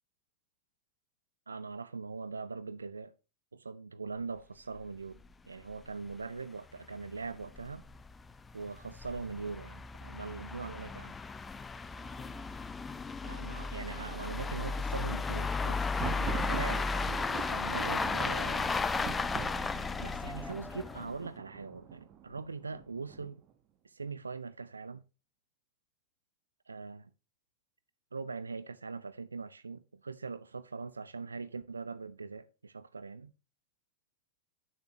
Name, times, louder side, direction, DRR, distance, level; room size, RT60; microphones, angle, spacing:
voice 1, 1.5-3.1 3.5-7.8 8.5-11.2 13.2-15.9 16.5-17.2 17.5-18.8 19.5-23.4 23.8-25.0 26.7-27.1 28.1-33.3, right 4 dB, 75° right, 0.4 m, -42 dB
sound 1, 4.8-4.9 5.2-5.3 5.7-5.8 6.1-6.2 6.8-21.2, left 4 dB, 15° left, 0.4 m, -35 dB
Thunder, 15.7-23.5, right 9 dB, 30° right, 1.0 m, -43 dB
9.3 x 6.9 x 2.7 m
figure-of-eight pair, 95°, 0 cm